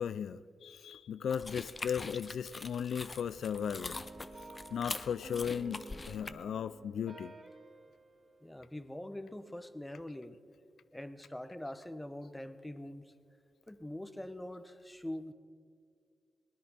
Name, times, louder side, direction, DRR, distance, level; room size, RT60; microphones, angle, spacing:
voice 1, 0.0-4.0 4.7-7.3, left 8 dB, 80° left, 14 dB, 0.3 m, -36 dB
sound 1, 1.3-6.3, left 3 dB, 35° left, 0.7 m, -44 dB
sound 2, 3.5-9.2, right 2 dB, 45° right, 2.6 m, -52 dB
voice 2, 8.4-10.4 10.9-13.1 13.7-15.3, left 1 dB, 10° left, 11 dB, 1.0 m, -43 dB
19.0 x 10.0 x 5.8 m, 2.1 s
cardioid pair, 55°, 0 cm